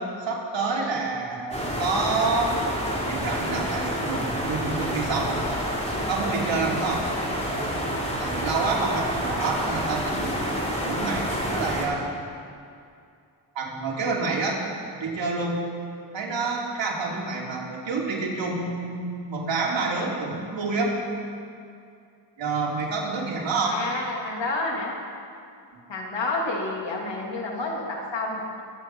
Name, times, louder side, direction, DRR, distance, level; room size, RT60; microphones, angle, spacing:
voice 1, 0.2-2.5 3.0-5.5 6.1-7.0 8.2-10.3 10.8-12.1 13.5-14.6 15.0-15.6 16.1-21.0 22.4-23.7, right 3 dB, 80° right, -3 dB, 3.1 m, -28 dB
sound 1, 1.5-11.9, equal, 15° left, 3.3 m, -28 dB
voice 2, 23.6-24.9 25.9-28.6, left 2 dB, 75° left, -2 dB, 3.1 m, -29 dB
23.0 x 9.7 x 4.8 m, 2.4 s
wide cardioid pair, 100°, 44 cm